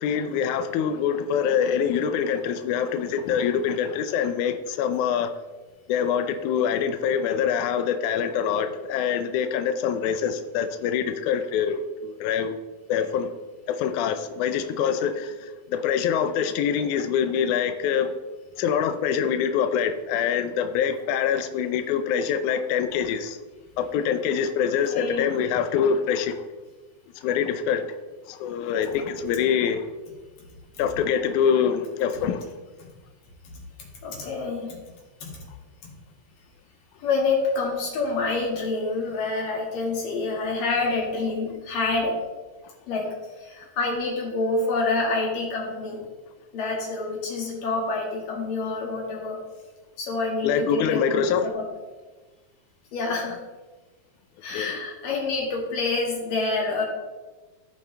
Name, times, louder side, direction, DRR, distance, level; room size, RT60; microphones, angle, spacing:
voice 1, 0.0-5.3 5.9-12.6 12.9-13.3 13.7-18.1 18.6-23.4 23.8-26.4 27.2-27.9 28.3-29.8 30.8-32.4 50.4-51.5 54.5-54.7, left 7 dB, 85° left, 1.7 m, -25 dB
voice 2, 24.9-25.3 34.0-34.8 35.2-35.4 37.0-42.2 42.9-46.0 46.5-49.4 50.0-51.7 52.9-53.4 54.4-56.9, left 3 dB, 65° left, 3.6 m, -27 dB
14.5 x 5.8 x 3.4 m
omnidirectional pair, 4.2 m